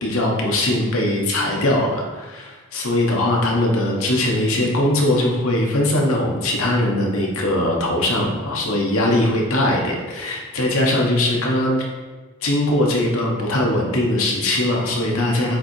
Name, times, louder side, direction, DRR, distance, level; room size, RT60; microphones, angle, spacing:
voice 1, 0.0-11.8 12.4-15.6, left 1 dB, 80° left, -1 dB, 1.2 m, -20 dB
7.2 x 2.9 x 4.5 m, 1.3 s
head